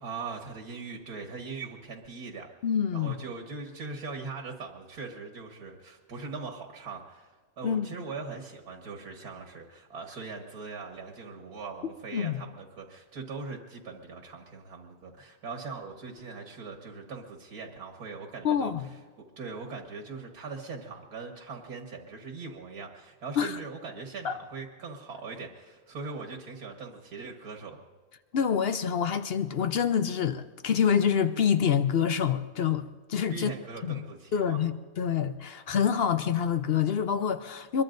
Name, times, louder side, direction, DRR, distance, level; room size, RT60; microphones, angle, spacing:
voice 1, 0.0-2.5 2.9-7.3 7.6-18.7 19.4-27.8 33.3-34.6, right 4 dB, 85° right, 2.1 m, -40 dB
voice 2, 2.6-3.1 7.6-7.9 12.1-12.4 18.4-18.9 23.4-23.6 24.2-24.4 28.3-33.5 33.8-34.0 34.3-37.8, left 7 dB, 55° left, 0.7 m, -26 dB
25.0 x 22.0 x 2.6 m
omnidirectional pair, 1.6 m